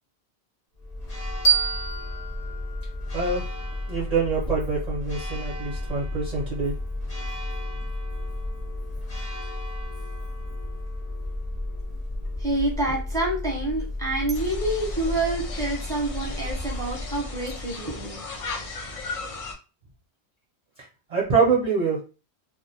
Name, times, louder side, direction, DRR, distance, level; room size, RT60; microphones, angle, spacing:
Church bell, 0.7-18.0, left 1 dB, 40° left, 0.8 m, -33 dB
sound 1, 1.4-4.2, right 7 dB, 80° left, 0.9 m, -28 dB
voice 1, 3.1-3.4 3.9-6.7 21.1-22.0, right 5 dB, 50° right, -4 dB, 0.5 m, -25 dB
voice 2, 12.4-18.2, right 2 dB, 5° left, -3 dB, 0.7 m, -27 dB
sound 2, 14.3-19.5, left 3 dB, 60° left, 0.3 m, -37 dB
2.2 x 2.1 x 2.6 m, 0.32 s
omnidirectional pair, 1.1 m